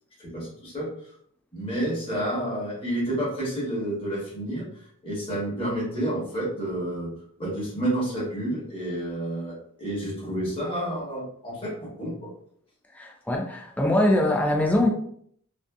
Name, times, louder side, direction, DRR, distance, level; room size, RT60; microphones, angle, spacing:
voice 1, 0.2-0.9 1.5-7.1 7.4-12.3, right 1 dB, 25° left, 1.1 m, -30 dB
voice 2, 12.9-14.9, left 1 dB, 5° left, 0.4 m, -22 dB
2.6 x 2.5 x 2.2 m
head